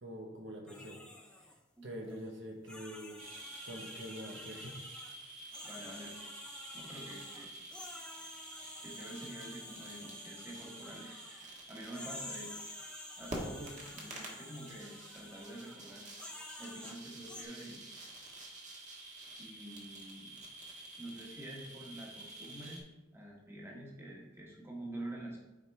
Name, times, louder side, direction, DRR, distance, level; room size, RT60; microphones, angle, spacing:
voice 1, 0.0-1.0 1.4-1.5 1.8-3.2 3.6-4.8, equal, 70° right, 1 dB, 1.2 m, -45 dB
sound 1, 0.7-1.6 2.1-2.2 2.7-5.2 5.5-11.5 11.9-15.8 16.2-17.4, left 1 dB, 5° left, 0.7 m, -50 dB
sound 2, 3.2-22.8, right 1 dB, 40° right, 1.5 m, -49 dB
voice 2, 5.6-6.2 6.7-7.5 8.8-12.6 13.2-16.1 16.6-17.8 19.4-20.4 21.0-22.8 23.1-25.4, right 1 dB, 15° right, -3 dB, 1.5 m, -47 dB
8.8 x 4.9 x 3.3 m, 0.99 s
head